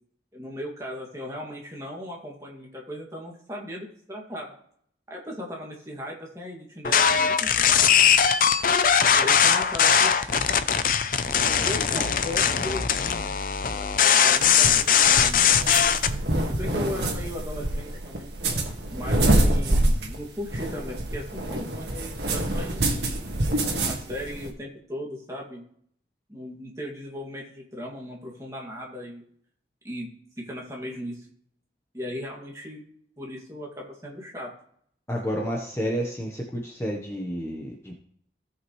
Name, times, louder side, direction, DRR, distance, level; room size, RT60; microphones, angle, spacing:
voice 1, 0.3-4.5 5.1-8.1 9.1-10.4 11.3-13.2 14.0-15.4 16.5-18.3 18.9-23.1 23.9-25.6 26.3-29.2 29.8-30.1 30.4-31.3 31.9-32.8 33.2-34.5, left 1 dB, 15° right, -2 dB, 2.2 m, -37 dB
sound 1, 6.8-16.1, left 7 dB, 50° left, 0.5 m, -20 dB
sound 2, 14.3-24.5, right 1 dB, 70° right, 1.7 m, -26 dB
voice 2, 35.1-37.9, equal, 15° left, -1 dB, 1.0 m, -30 dB
17.0 x 5.8 x 3.2 m, 0.64 s
head